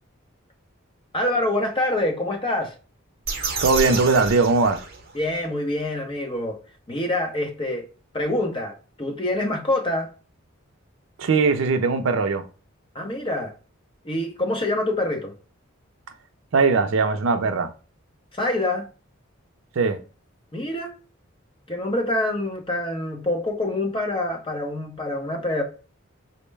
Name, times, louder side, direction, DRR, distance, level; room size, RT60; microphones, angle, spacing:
voice 1, 1.1-2.7 5.1-6.6 6.9-7.9 8.1-10.1 12.9-13.5 14.0-15.3 18.3-18.9 20.5-20.9 21.7-25.6, left 1 dB, 25° left, 0.7 m, -26 dB
sound 1, 3.2-5.4, right 4 dB, 45° right, 0.8 m, -30 dB
voice 2, 3.6-4.8 11.2-12.4 16.5-17.7 19.8-20.0, right 4 dB, 65° right, 0.4 m, -20 dB
4.4 x 2.1 x 3.2 m
head